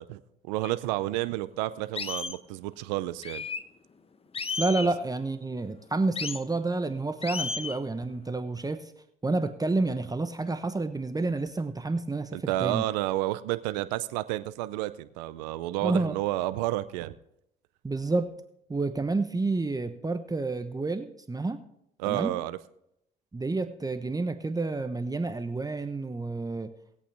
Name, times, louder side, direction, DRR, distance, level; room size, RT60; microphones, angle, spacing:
voice 1, 0.0-3.4 12.3-17.1 22.0-22.6, right 16 dB, 85° right, 14 dB, 0.6 m, -30 dB
sound 1, 0.6-0.7 1.3-1.4 2.0-2.4 3.2-3.6 4.3-4.9 6.2-6.4 7.2-7.8, left 4 dB, 30° left, 0.9 m, -33 dB
voice 2, 4.6-8.9 9.2-12.8 15.8-16.2 17.8-18.3 18.7-21.6 22.0-22.3 23.3-26.7, right 3 dB, 15° right, 9 dB, 1.0 m, -29 dB
19.5 x 8.4 x 3.4 m, 0.77 s
hypercardioid pair, 60°, 21 cm